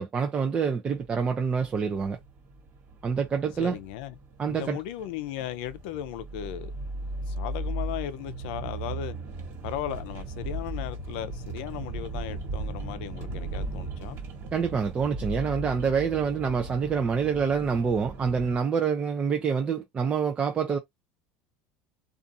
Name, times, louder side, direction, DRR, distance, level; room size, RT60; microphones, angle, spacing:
voice 1, 0.0-2.2 3.0-3.8 4.4-4.8 14.5-20.8, right 6 dB, 25° right, 0.4 m, -26 dB
sound 1, 0.9-18.6, right 2 dB, 50° right, 1.3 m, -37 dB
voice 2, 3.6-4.1 4.5-6.7 7.3-9.1 9.6-14.2, left 12 dB, 75° left, 0.5 m, -36 dB
2.5 x 2.4 x 2.6 m
supercardioid pair, 130°, 5 cm